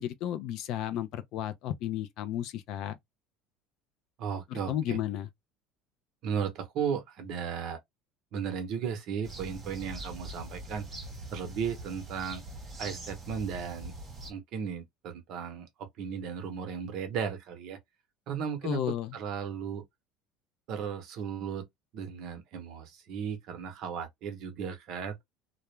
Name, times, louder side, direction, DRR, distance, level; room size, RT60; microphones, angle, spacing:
voice 1, 0.0-3.0 4.5-5.3 18.6-19.2, left 11 dB, 55° left, 0.4 m, -33 dB
voice 2, 4.2-5.0 6.2-7.8 8.3-10.9 11.3-12.4 12.8-13.9 14.3-17.8 18.3-19.8 20.7-21.7 21.9-25.2, right 7 dB, 50° right, 0.7 m, -35 dB
sound 1, 9.2-14.3, right 2 dB, 15° right, 0.8 m, -43 dB
2.3 x 2.0 x 3.0 m
cardioid pair, 160°, 0 cm